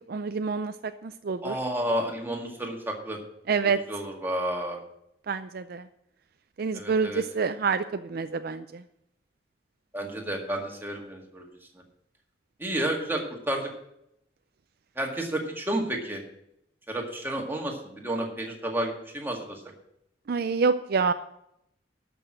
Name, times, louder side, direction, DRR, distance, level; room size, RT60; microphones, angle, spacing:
voice 1, 0.0-1.6 3.5-3.8 5.3-5.9 6.6-8.8 20.3-21.1, right 5 dB, 55° right, 10 dB, 0.4 m, -27 dB
voice 2, 1.4-3.2 3.6-4.8 6.7-7.2 9.9-11.4 12.6-13.7 15.0-16.2 16.9-19.6, right 1 dB, 10° right, 1 dB, 1.9 m, -31 dB
12.0 x 6.2 x 7.5 m, 0.78 s
head